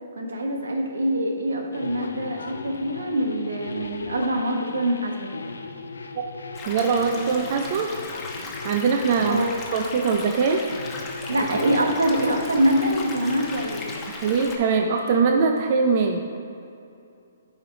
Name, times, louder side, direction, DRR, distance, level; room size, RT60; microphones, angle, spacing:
voice 1, 0.2-5.3 9.3-9.5 11.3-13.8, right 1 dB, 85° right, 2 dB, 1.2 m, -24 dB
sound 1, 1.7-15.2, left 3 dB, 85° left, 0.6 m, -38 dB
sound 2, 6.5-14.6, left 3 dB, 20° left, 1.0 m, -37 dB
voice 2, 6.7-7.9 8.6-9.4 9.7-10.6 14.1-16.2, right 5 dB, 45° right, 4 dB, 0.5 m, -22 dB
8.9 x 5.2 x 3.8 m, 2.7 s
hypercardioid pair, 140°, 0 cm